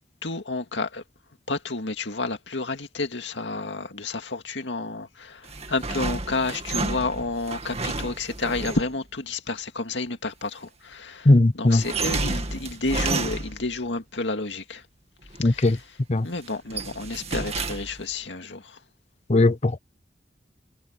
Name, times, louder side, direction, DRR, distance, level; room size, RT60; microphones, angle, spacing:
voice 1, 0.2-1.0 1.5-14.9 15.4-18.8, left 3 dB, 85° left, 2.2 m, -30 dB
sound 1, 5.4-9.0 11.7-13.8 15.2-15.8 16.2-18.1, right 3 dB, 35° right, 2.2 m, -31 dB
voice 2, 11.3-11.8 15.4-15.8 16.1-16.3 19.3-19.8, left 2 dB, 40° left, 0.8 m, -18 dB
head